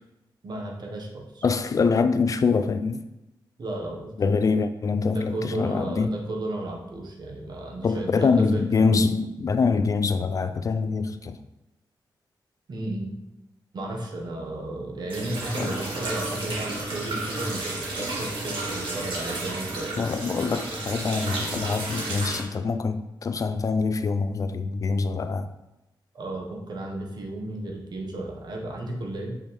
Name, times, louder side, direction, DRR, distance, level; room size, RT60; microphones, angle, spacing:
voice 1, 0.4-1.4 3.6-4.1 5.0-9.1 12.7-13.1 13.7-20.0 26.1-29.3, right 2 dB, 55° right, 0 dB, 1.4 m, -34 dB
voice 2, 1.4-3.0 4.2-6.2 7.8-11.4 15.6-15.7 20.0-25.5, left 4 dB, 40° left, 10 dB, 0.4 m, -24 dB
sound 1, 15.1-22.4, right 2 dB, 85° right, 1.8 m, -32 dB
7.6 x 5.3 x 3.4 m, 0.93 s
wide cardioid pair, 150°, 8 cm